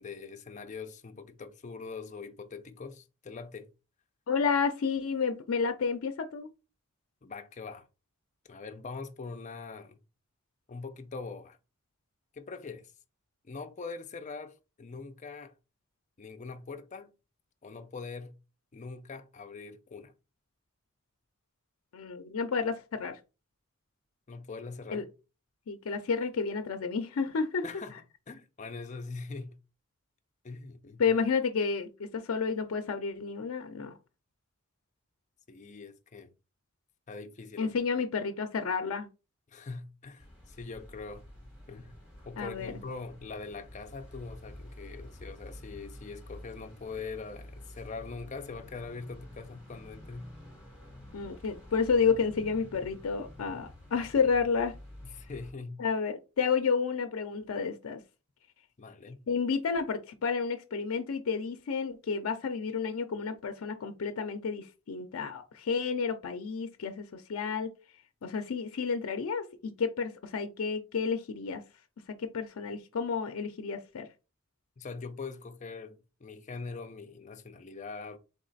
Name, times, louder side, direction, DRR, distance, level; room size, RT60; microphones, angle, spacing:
voice 1, 0.0-3.7 7.2-7.9 8.5-10.0 10.7-11.6 12.3-12.9 13.4-15.5 16.2-17.1 17.6-18.4 18.7-20.1 24.3-25.1 27.6-29.6 30.4-31.2 35.5-36.3 37.1-37.7 39.5-41.2 41.7-42.0 42.2-50.3 55.0-55.8 58.8-59.2 74.8-78.2, left 4 dB, 35° left, 0.5 m, -42 dB
voice 2, 4.3-6.5 21.9-23.2 24.9-25.0 25.7-27.6 31.0-33.9 37.6-39.1 42.4-42.7 51.1-54.7 55.8-58.0 59.3-67.7 68.2-71.6 72.2-74.1, left 5 dB, 85° left, 0.5 m, -31 dB
sound 1, 40.2-55.5, left 1 dB, 5° right, 2.0 m, -49 dB
3.6 x 3.1 x 3.9 m
head